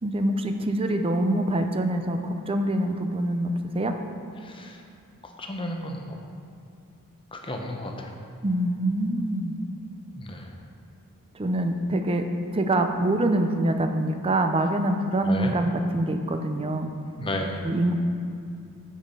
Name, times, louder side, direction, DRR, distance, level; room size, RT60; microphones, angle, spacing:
voice 1, 0.0-3.9 8.4-9.6 11.3-12.2 12.5-16.9 17.6-17.9, right 1 dB, 25° right, 6 dB, 0.5 m, -25 dB
voice 2, 4.4-4.8 5.2-6.2 7.3-8.1 10.2-10.5 15.2-15.5 17.2-17.6, left 1 dB, 25° left, 2 dB, 0.9 m, -33 dB
7.3 x 7.3 x 5.5 m, 2.4 s
head